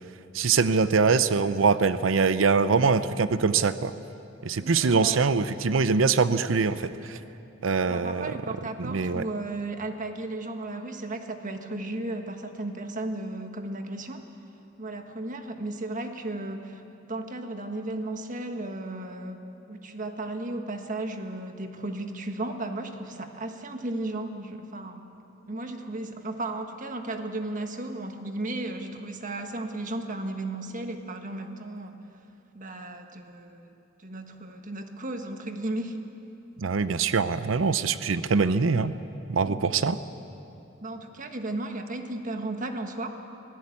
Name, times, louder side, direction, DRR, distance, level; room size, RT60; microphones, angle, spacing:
voice 1, 0.3-3.9 4.4-7.2 7.6-8.3 8.8-9.2 36.6-38.9 39.3-40.0, right 5 dB, 80° right, 13 dB, 0.6 m, -23 dB
voice 2, 4.6-5.2 7.8-14.2 14.8-19.4 19.7-25.0 25.5-32.0 32.5-33.7 34.0-36.0 39.4-39.6 40.8-43.1, right 2 dB, 40° right, 5 dB, 1.5 m, -35 dB
24.5 x 16.0 x 8.5 m, 2.8 s
head